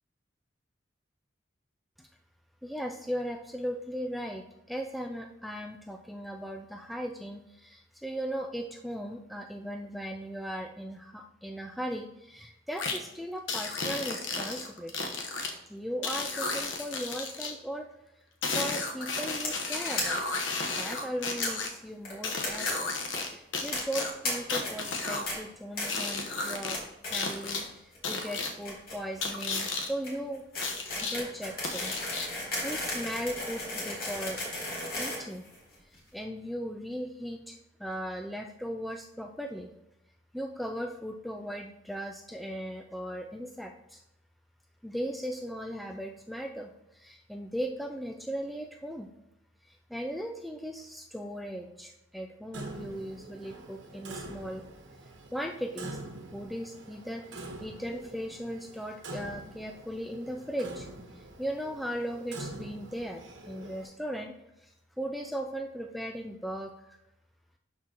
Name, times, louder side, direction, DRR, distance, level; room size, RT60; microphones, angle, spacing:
voice 1, 2.6-15.2 15.7-17.9 18.5-20.4 20.8-22.9 23.2-26.8 27.1-30.5 30.9-31.9 32.4-34.4 35.0-35.4 35.8-39.7 40.3-44.0 44.8-49.1 49.6-54.6 55.3-56.0 56.3-60.9 61.1-67.0, equal, ahead, 4 dB, 0.3 m, -38 dB
sound 1, 12.8-13.0 13.5-15.5 16.0-17.5 18.4-21.7 22.2-23.3 23.5-25.3 25.8-26.8 27.1-27.6 28.0-28.5 29.2-29.9 30.6-31.2 31.6-32.4, left 3 dB, 85° left, 1.1 m, -33 dB
sound 2, 19.4-19.6 20.0-20.1 20.3-20.4 20.6-20.7 21.4-21.5 22.0-22.7 23.0-23.2 23.7-24.3 24.6-24.9 25.3-25.4 25.8-26.1 26.4-26.8 27.0-27.6 27.9-36.0, left 2 dB, 50° left, 2.5 m, -35 dB
Clock, 52.5-63.9, right 2 dB, 85° right, 1.2 m, -45 dB
12.0 x 4.5 x 2.9 m, 0.87 s
head